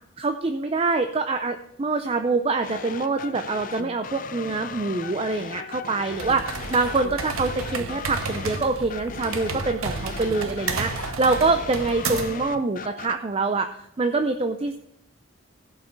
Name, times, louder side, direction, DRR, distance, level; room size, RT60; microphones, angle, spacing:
voice 1, 0.2-14.8, right 3 dB, 25° right, 7 dB, 0.4 m, -25 dB
sound 1, 2.6-13.1, left 5 dB, 40° left, 0.5 m, -38 dB
sound 2, 6.1-12.5, right 4 dB, 80° right, 0.9 m, -32 dB
16.0 x 5.5 x 4.5 m, 0.80 s
head